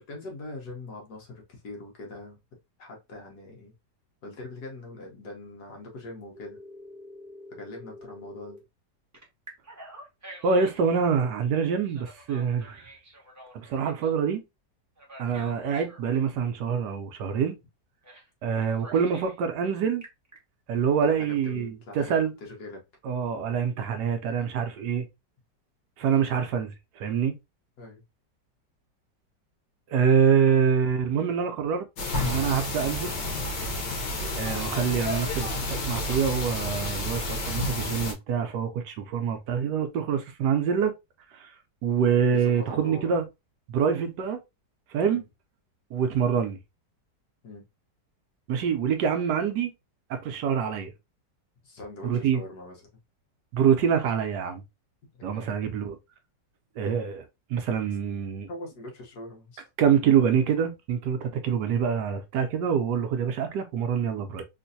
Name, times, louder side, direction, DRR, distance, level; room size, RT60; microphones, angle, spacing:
voice 1, 0.0-2.4 2.8-3.7 4.2-6.6 7.5-8.6 15.2-15.6 21.0-22.8 27.8-28.0 33.8-34.0 42.2-43.1 45.0-45.2 47.4-47.7 51.6-52.9 55.1-55.5 58.5-59.6, left 2 dB, 65° left, 1.6 m, -42 dB
Telephone, 6.3-8.6 9.1-10.9 11.9-14.1 15.0-16.3 18.0-18.3 18.6-19.4 19.8-20.4, equal, 15° right, 0.7 m, -47 dB
voice 2, 10.4-12.9 13.5-14.4 15.2-17.6 18.4-20.0 20.7-22.3 23.0-25.1 26.0-27.3 29.9-31.9 32.2-33.1 34.4-40.9 41.3-41.5 41.8-43.2 43.7-44.4 44.9-45.2 45.9-46.6 48.5-49.7 50.1-50.9 52.0-52.4 53.5-54.6 55.2-56.0 56.8-58.5 59.8-64.4, right 7 dB, 75° right, 1.1 m, -25 dB
sound 1, 32.0-38.1, left 1 dB, 80° left, 1.6 m, -30 dB
3.7 x 2.5 x 2.6 m
omnidirectional pair, 1.9 m